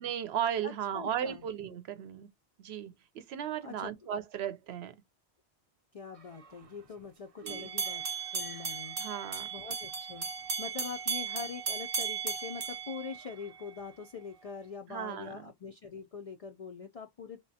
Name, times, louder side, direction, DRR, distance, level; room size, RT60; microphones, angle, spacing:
voice 1, 0.0-2.3 2.6-4.9 7.4-7.7 9.0-9.5 14.9-15.4, right 9 dB, 75° right, 0.8 m, -36 dB
voice 2, 0.6-1.4 3.6-3.9 5.9-8.0 8.3-9.0 9.5-10.3 10.6-17.5, left 5 dB, 60° left, 0.4 m, -43 dB
sound 1, 7.5-13.7, right 5 dB, 40° right, 0.5 m, -36 dB
3.6 x 3.0 x 2.7 m
omnidirectional pair, 1.1 m